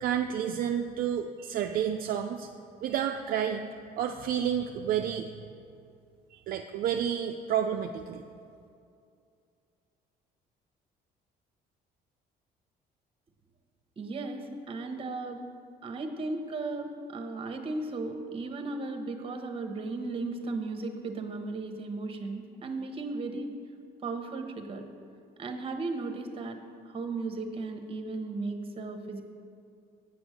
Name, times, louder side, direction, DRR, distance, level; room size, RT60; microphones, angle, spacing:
voice 1, 0.0-2.5 2.8-3.7 4.0-5.3 6.3-8.2, right 9 dB, 60° right, 4 dB, 0.4 m, -30 dB
voice 2, 14.0-15.4 15.8-23.5 24.0-24.8 25.4-26.6 26.9-29.2, right 3 dB, 35° right, 5 dB, 1.0 m, -35 dB
8.2 x 6.1 x 6.5 m, 2.4 s
cardioid pair, 110°, 17 cm